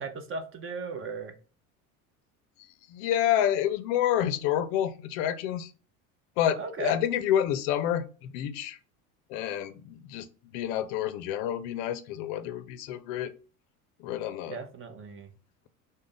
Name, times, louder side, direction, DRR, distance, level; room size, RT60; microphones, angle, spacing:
voice 1, 0.0-1.3 6.6-7.0 14.5-15.3, right 4 dB, 30° right, 0.6 m, -37 dB
voice 2, 2.9-5.7 6.4-8.8 9.3-10.3 10.5-13.3 14.0-14.6, left 10 dB, 55° left, 0.5 m, -28 dB
3.5 x 2.2 x 3.7 m
hypercardioid pair, 80°, 44 cm